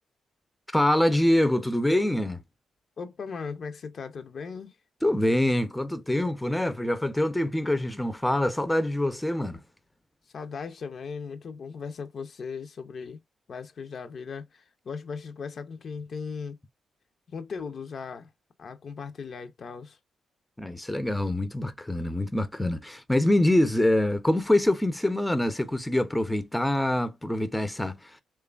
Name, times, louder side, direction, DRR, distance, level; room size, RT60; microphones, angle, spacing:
voice 1, 0.7-2.4 5.0-9.6 20.6-28.1, left 1 dB, 10° left, 0.5 m, -25 dB
voice 2, 3.0-4.8 10.3-13.2 13.5-16.6 17.3-18.3 18.6-20.0, left 5 dB, 60° left, 0.5 m, -38 dB
3.1 x 2.2 x 2.3 m
supercardioid pair, 50°, 0 cm